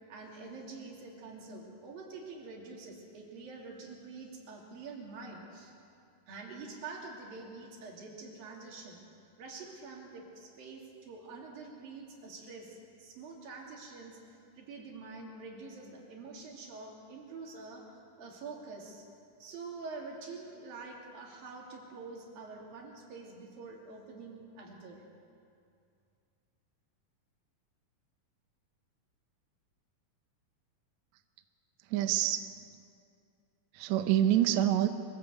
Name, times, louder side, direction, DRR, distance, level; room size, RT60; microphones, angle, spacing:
voice 1, 0.1-5.7 6.3-9.0 9.4-19.0 19.4-25.0, right 4 dB, 85° right, -1 dB, 4.6 m, -46 dB
voice 2, 31.9-32.6 33.7-34.9, right 12 dB, 70° right, 8 dB, 1.8 m, -26 dB
24.0 x 16.0 x 8.2 m, 2.5 s
omnidirectional pair, 4.0 m